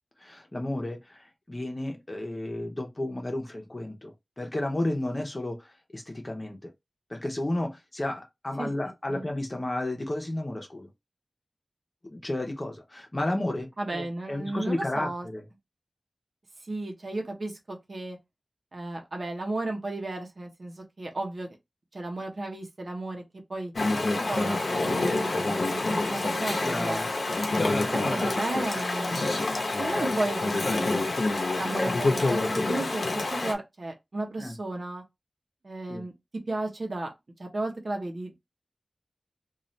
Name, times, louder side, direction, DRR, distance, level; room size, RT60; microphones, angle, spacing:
voice 1, 0.2-6.7 7.1-10.9 12.1-15.4 26.6-27.1 27.6-27.9 31.8-31.9 34.4-34.6 35.9-36.0, left 1 dB, 35° left, 0.9 m, -32 dB
voice 2, 13.8-15.3 16.6-18.2 18.7-21.5 21.9-23.2 23.5-23.7 24.2-27.0 27.9-29.4 29.8-31.0 31.6-35.0 35.6-36.1 36.5-37.1 37.4-38.3, right 2 dB, 65° right, 0.8 m, -34 dB
Chatter / Stream, 23.8-33.5, left 2 dB, 80° left, 0.7 m, -27 dB
2.6 x 2.4 x 3.1 m
cardioid pair, 45°, 0 cm